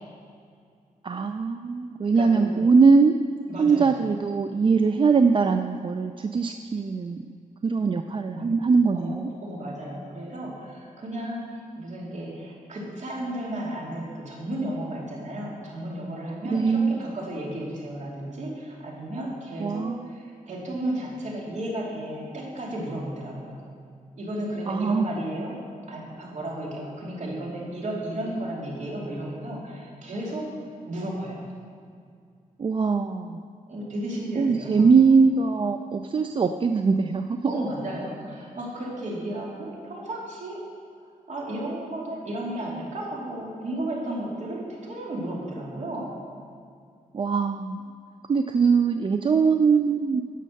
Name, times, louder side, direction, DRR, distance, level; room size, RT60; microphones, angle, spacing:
voice 1, 1.0-3.1 3.6-7.2 7.6-9.3 16.4-17.1 19.6-20.1 24.7-25.2 32.6-33.4 34.4-37.5 47.1-47.8 48.3-50.2, right 5 dB, 35° right, 7 dB, 0.4 m, -21 dB
voice 2, 2.0-2.6 3.5-3.9 8.3-8.4 8.9-9.1 9.4-11.5 11.8-23.6 24.1-25.6 25.9-30.5 30.9-31.5 33.7-34.9 37.5-40.6 41.3-46.1, right 1 dB, 55° right, -4 dB, 2.9 m, -33 dB
10.0 x 6.6 x 6.5 m, 2.3 s
wide cardioid pair, 105°, 14 cm